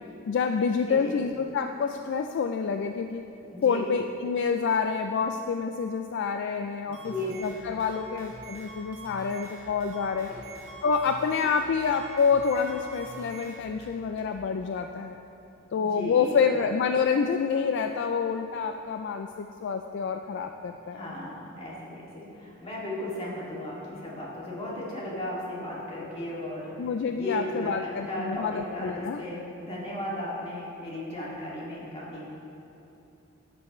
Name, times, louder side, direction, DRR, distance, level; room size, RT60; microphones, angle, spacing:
voice 1, 0.3-3.3 3.6-7.1 7.4-10.3 10.8-15.2 15.7-21.1 26.8-29.2, left 6 dB, 60° left, 6 dB, 0.3 m, -27 dB
voice 2, 0.9-1.2 3.5-3.8 6.9-7.4 10.3-10.4 11.4-11.5 15.7-16.4 20.9-26.7 27.1-32.2, left 1 dB, 30° left, -6 dB, 2.3 m, -35 dB
sound 1, 6.9-14.3, right 2 dB, 85° right, 1.5 m, -45 dB
11.5 x 8.9 x 3.1 m, 2.9 s
head